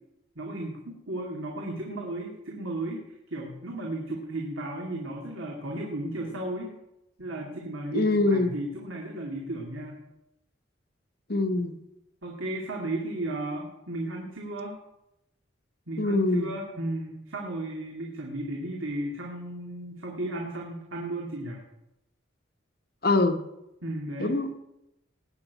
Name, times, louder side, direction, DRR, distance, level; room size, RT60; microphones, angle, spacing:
voice 1, 0.4-3.0 3.3-6.8 7.2-10.0 12.2-14.8 15.9-21.6 23.8-24.4, right 1 dB, 85° right, -1 dB, 2.4 m, -34 dB
voice 2, 7.9-8.5 11.3-11.8 16.0-16.5 23.0-23.4 24.2-24.6, left 2 dB, 50° left, 8 dB, 1.2 m, -24 dB
19.0 x 6.6 x 8.3 m, 0.90 s
head